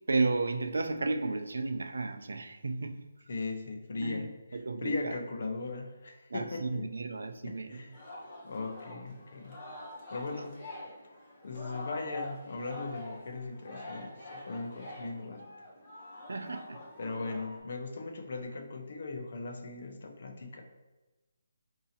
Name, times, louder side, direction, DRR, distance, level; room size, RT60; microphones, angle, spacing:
voice 1, 0.1-3.1 4.0-5.2 6.3-7.8 16.3-16.8, right 3 dB, 85° right, 0.4 m, -33 dB
voice 2, 3.3-4.3 4.8-6.9 7.4-7.9 8.4-9.6 10.1-10.5 11.4-15.5 17.0-20.6, left 3 dB, 55° left, 0.6 m, -38 dB
Singing, 7.9-17.6, left 2 dB, 30° left, 1.0 m, -46 dB
4.8 x 2.8 x 2.8 m
hypercardioid pair, 165°, 0 cm